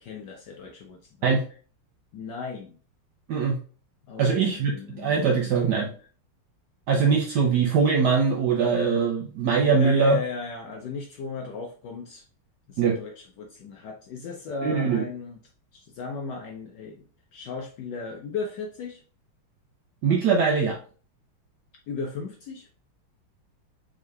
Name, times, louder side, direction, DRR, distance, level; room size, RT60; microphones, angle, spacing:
voice 1, 0.0-1.3 2.1-2.8 4.1-5.7 9.7-12.2 12.7-15.4 15.7-17.0 17.3-19.0 21.9-22.7, left 4 dB, 75° left, 3 dB, 1.0 m, -36 dB
voice 2, 3.3-3.6 4.2-5.9 6.9-10.2 12.8-13.0 14.6-15.1 20.0-20.8, right 5 dB, 70° right, 0 dB, 1.0 m, -22 dB
3.8 x 3.6 x 3.2 m, 0.39 s
omnidirectional pair, 2.4 m